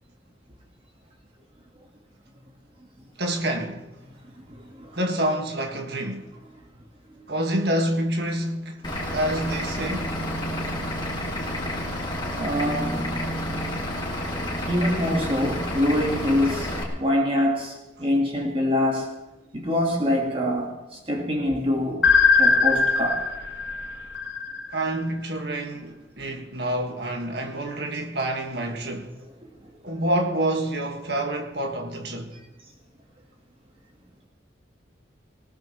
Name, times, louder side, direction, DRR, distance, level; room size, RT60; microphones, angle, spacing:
voice 1, 3.2-3.8 4.9-6.3 7.3-8.8 9.1-10.2 24.7-29.2 29.8-32.4, right 1 dB, 60° right, 1.8 m, -27 dB
voice 2, 4.3-5.0 7.2-7.3 12.3-13.1 14.7-19.1 19.5-22.1 22.4-23.3 29.4-29.5, left 1 dB, 30° right, 1.7 m, -25 dB
Vehicle / Engine, 8.8-16.8, left 1 dB, 25° left, 2.9 m, -30 dB
sound 1, 22.0-25.0, left 5 dB, 70° left, 1.6 m, -21 dB
19.5 x 18.5 x 3.2 m
head